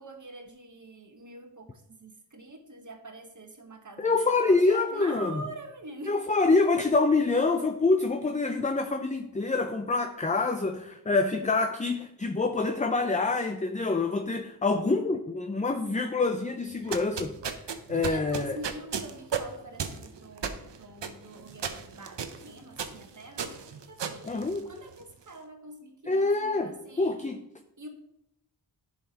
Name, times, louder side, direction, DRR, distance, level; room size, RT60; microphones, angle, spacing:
voice 1, 0.0-6.5 16.8-17.1 17.9-27.2 27.8-27.9, right 2 dB, 45° right, 4 dB, 1.2 m, -45 dB
voice 2, 4.0-5.4 6.1-17.3 17.9-18.6 24.2-24.6 26.1-27.4, left 3 dB, 20° left, 6 dB, 0.5 m, -26 dB
sound 1, 16.7-25.1, right 6 dB, 80° right, 0.7 m, -36 dB
10.5 x 5.6 x 2.9 m, 0.80 s
wide cardioid pair, 60°, 42 cm